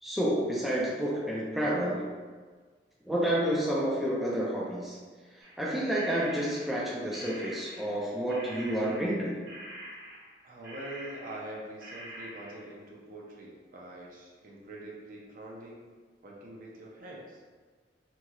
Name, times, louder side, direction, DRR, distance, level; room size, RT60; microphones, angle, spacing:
voice 1, 0.0-2.1 3.1-5.0 5.6-9.4, right 1 dB, ahead, -6 dB, 0.4 m, -29 dB
sound 1, 5.4-8.0 8.3-11.6 11.8-12.7, right 1 dB, 90° right, 1.2 m, -46 dB
voice 2, 10.4-15.8 16.2-17.4, right 1 dB, 50° right, -3 dB, 0.6 m, -44 dB
3.0 x 2.7 x 2.4 m, 1.5 s
head